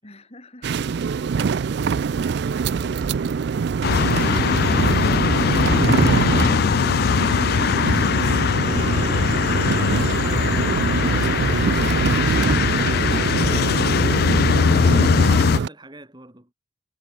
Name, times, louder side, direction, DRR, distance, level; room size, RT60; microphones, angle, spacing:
voice 1, 0.0-1.7 2.5-3.9, left 2 dB, 30° left, 6.4 m, -49 dB
sound 1, 0.6-15.7, right 5 dB, 55° right, 0.4 m, -24 dB
sound 2, 3.8-15.6, left 6 dB, 50° left, 0.3 m, -20 dB
voice 2, 15.2-16.5, right 1 dB, 20° right, 3.4 m, -46 dB
head